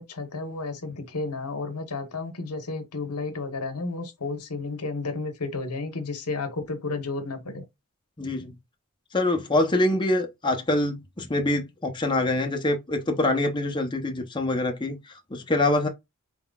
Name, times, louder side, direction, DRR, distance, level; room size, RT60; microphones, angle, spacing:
voice 1, 0.0-7.6, left 3 dB, 85° left, 1.1 m, -32 dB
voice 2, 8.2-8.5 9.1-15.9, left 2 dB, 20° left, 0.7 m, -25 dB
4.4 x 3.8 x 2.3 m
head